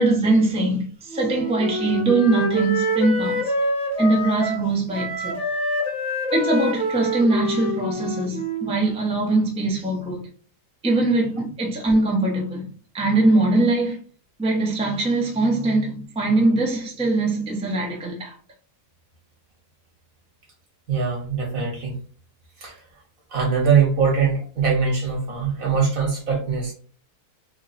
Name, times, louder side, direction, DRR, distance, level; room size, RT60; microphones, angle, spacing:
voice 1, 0.0-3.5 4.0-5.4 6.3-10.3 10.8-12.7 12.9-14.0 14.4-18.4, right 2 dB, 5° right, 0.7 m, -22 dB
Wind instrument woodwind instrument, 1.1-8.8, equal, 50° left, 1.3 m, -26 dB
voice 2, 20.9-21.9 22.6-22.8 23.3-26.7, right 6 dB, 60° right, 1.6 m, -22 dB
3.5 x 2.2 x 4.1 m
omnidirectional pair, 1.7 m